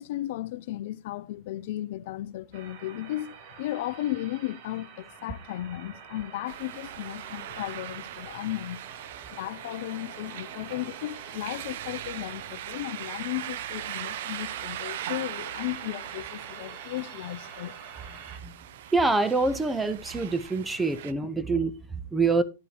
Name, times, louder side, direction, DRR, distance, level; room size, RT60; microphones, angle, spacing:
voice 1, 0.0-8.8 9.3-17.7, left 15 dB, 55° left, 0.5 m, -35 dB
sound 1, 2.5-18.4, right 7 dB, 45° right, 1.8 m, -47 dB
sound 2, 6.5-21.1, right 12 dB, 60° right, 0.6 m, -40 dB
voice 2, 18.9-22.4, right 3 dB, 10° right, 0.8 m, -26 dB
11.0 x 8.3 x 3.3 m
hypercardioid pair, 130°, 0 cm